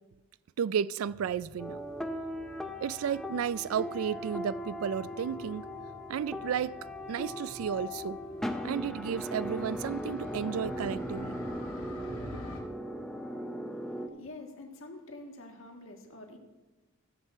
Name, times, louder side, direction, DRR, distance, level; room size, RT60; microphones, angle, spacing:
voice 1, 0.6-1.8 2.8-5.7 6.1-6.8 7.1-8.2 8.6-11.4, right 8 dB, 85° right, 0.3 m, -33 dB
Motorcycle, 1.0-12.6, equal, 85° left, 2.1 m, -48 dB
sound 1, 1.6-14.1, equal, ahead, 0.6 m, -38 dB
voice 2, 14.1-16.4, left 2 dB, 70° left, 1.6 m, -46 dB
14.5 x 7.5 x 4.3 m
head